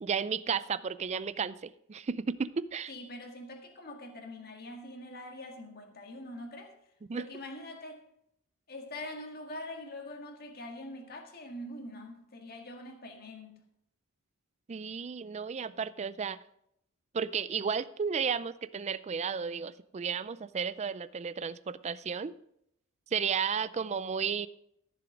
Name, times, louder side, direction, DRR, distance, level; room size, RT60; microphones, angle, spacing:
voice 1, 0.0-2.9 7.1-7.3 14.7-16.4 17.1-22.3 23.1-24.5, right 6 dB, 30° right, 0.4 m, -33 dB
voice 2, 2.9-6.7 7.1-8.0 8.7-13.6, left 1 dB, 45° left, 1.9 m, -44 dB
14.0 x 7.0 x 5.1 m
head